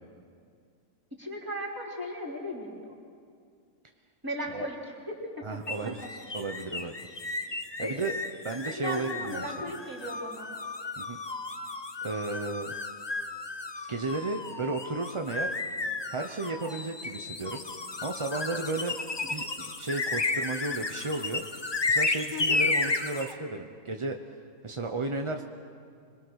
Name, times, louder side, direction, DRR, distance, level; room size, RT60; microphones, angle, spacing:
voice 1, 1.2-2.9 4.2-4.8 5.1-5.2 7.8-8.0 8.7-10.5 22.3-22.6, equal, 10° right, -3 dB, 3.7 m, -36 dB
voice 2, 5.4-6.9 7.8-8.1 8.4-9.5 11.0-11.2 12.0-12.7 13.9-15.5 16.1-17.6 18.0-19.0 19.3-21.4 21.9-24.2 24.6-25.4, right 3 dB, 30° right, 4 dB, 0.5 m, -33 dB
sound 1, 5.7-23.3, left 3 dB, 30° left, 0.4 m, -33 dB
26.0 x 21.5 x 6.4 m, 2.3 s
omnidirectional pair, 1.7 m